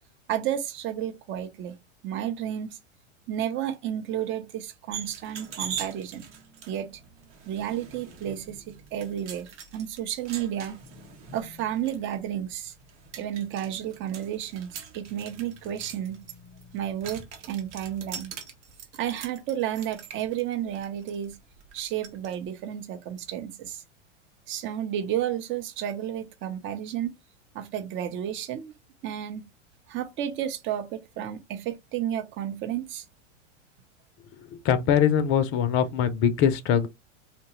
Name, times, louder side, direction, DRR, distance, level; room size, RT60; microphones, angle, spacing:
voice 1, 0.3-1.8 2.0-2.8 3.3-6.3 6.7-6.9 7.5-10.8 11.3-12.7 13.2-16.2 16.7-18.3 18.9-21.4 21.7-23.8 24.5-27.1 27.5-28.7 29.0-29.5 29.9-33.0, right 10 dB, 35° right, 0.6 m, -32 dB
sound 1, 4.9-22.4, right 7 dB, 70° right, 0.9 m, -43 dB
voice 2, 34.5-36.9, left 8 dB, 35° left, 0.5 m, -22 dB
2.9 x 2.2 x 2.8 m
hypercardioid pair, 90°, 37 cm